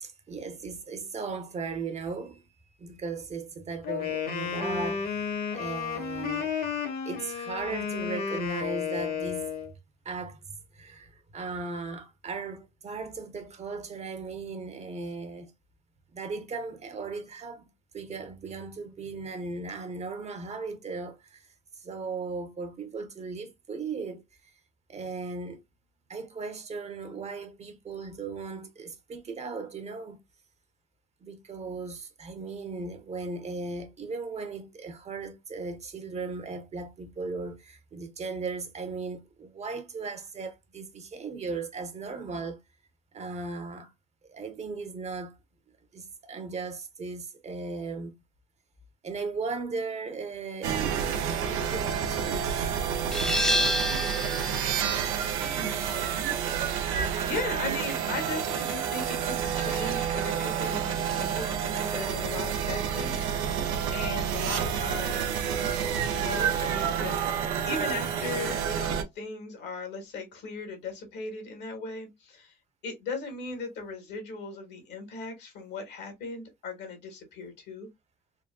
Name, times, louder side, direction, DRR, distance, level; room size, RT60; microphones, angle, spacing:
voice 1, 0.0-2.4 2.8-5.2 5.5-6.5 7.1-9.5 10.0-10.4 10.7-15.5 16.1-17.6 17.9-21.5 21.8-24.2 24.9-25.6 26.1-30.2 31.2-42.6 43.1-43.9 44.3-45.4 45.9-48.1 49.0-52.6 53.1-53.6, right 4 dB, 35° right, 0.9 m, -37 dB
Wind instrument woodwind instrument, 3.8-9.7, left 6 dB, 50° left, 1.3 m, -32 dB
sound 1, 50.6-69.0, right 8 dB, 90° right, 0.6 m, -29 dB
sound 2, 53.1-58.5, left 1 dB, 5° left, 0.6 m, -31 dB
voice 2, 57.0-65.2 66.1-72.5 72.8-77.9, left 3 dB, 70° left, 1.5 m, -38 dB
3.7 x 2.2 x 2.2 m
supercardioid pair, 80°, 19 cm